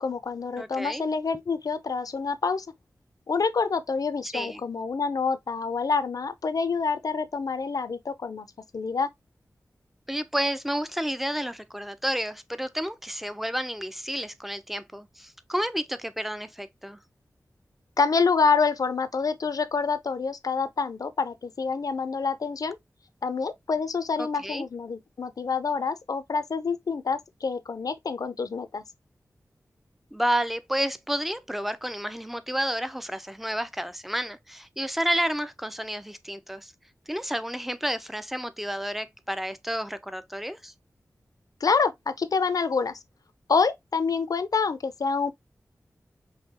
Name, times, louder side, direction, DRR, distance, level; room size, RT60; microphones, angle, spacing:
voice 1, 0.0-2.7 3.3-8.5 8.7-9.1 18.0-22.8 23.2-28.8 41.6-43.0 43.5-45.3, left 5 dB, 75° left, 0.6 m, -27 dB
voice 2, 0.6-1.1 4.3-4.6 10.1-17.0 24.2-24.6 30.1-36.7 37.1-40.7, equal, 5° right, 0.6 m, -30 dB
5.6 x 2.9 x 2.8 m
wide cardioid pair, 60°, 6 cm